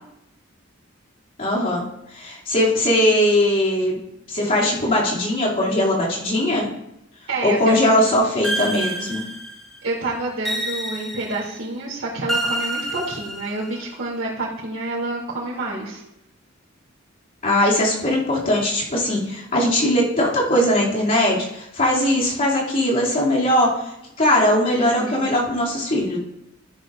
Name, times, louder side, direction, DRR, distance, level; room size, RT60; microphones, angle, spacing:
voice 1, 1.4-1.8 2.1-4.0 4.3-6.7 7.4-9.2 17.4-23.9 24.2-26.2, left 1 dB, 45° left, -6 dB, 2.6 m, -20 dB
voice 2, 7.3-7.7 9.8-16.0 24.8-25.3, right 2 dB, 85° right, -7 dB, 2.9 m, -28 dB
sound 1, 8.4-9.8 10.4-11.6 12.3-13.8, right 1 dB, ahead, 2.0 m, -28 dB
13.0 x 12.5 x 2.5 m, 0.85 s
head